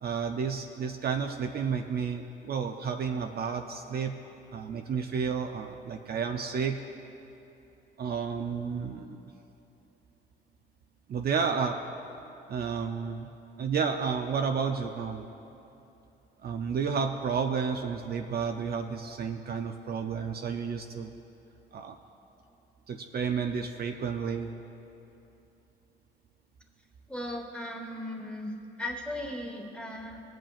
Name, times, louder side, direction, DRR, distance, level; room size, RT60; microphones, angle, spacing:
voice 1, 0.0-4.1 4.5-6.8 8.0-9.2 11.1-11.8 12.5-13.3 13.6-15.3 16.4-21.1 21.7-22.0 22.9-24.5, right 6 dB, 50° right, 5 dB, 0.5 m, -31 dB
voice 2, 27.1-28.5 28.8-30.2, left 1 dB, 5° left, 1 dB, 1.4 m, -37 dB
19.0 x 7.6 x 2.4 m, 3.0 s
cardioid pair, 90°, 20 cm